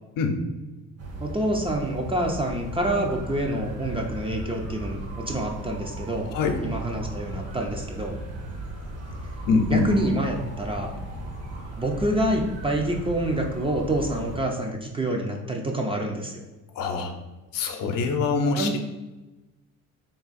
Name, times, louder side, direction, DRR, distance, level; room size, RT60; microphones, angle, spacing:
sound 1, 1.0-14.4, right 1 dB, 45° right, 0.8 m, -36 dB
voice 1, 1.2-6.3 6.6-8.2 9.7-11.0 11.8-16.4 18.6-18.8, right 1 dB, 15° right, 1 dB, 0.4 m, -27 dB
voice 2, 6.3-6.6 9.5-9.9 16.8-17.1 17.5-18.8, left 4 dB, 65° left, 4 dB, 0.7 m, -24 dB
3.5 x 2.4 x 4.0 m, 1.1 s
cardioid pair, 95°, 36 cm